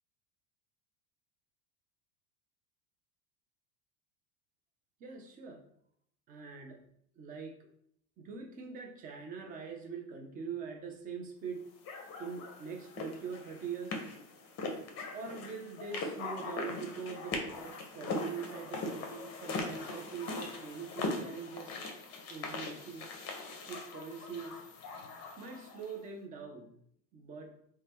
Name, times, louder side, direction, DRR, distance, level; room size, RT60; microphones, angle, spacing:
voice 1, 5.0-5.6 6.3-6.8 7.2-7.6 8.2-11.7 12.2-14.0 15.1-21.8 22.3-23.2 23.6-24.6 25.4-26.7 27.1-27.6, right 5 dB, 20° right, 3 dB, 0.3 m, -43 dB
sound 1, 11.8-25.9, left 3 dB, 30° left, 0.6 m, -40 dB
2.7 x 2.2 x 3.4 m, 0.69 s
hypercardioid pair, 95°, 48 cm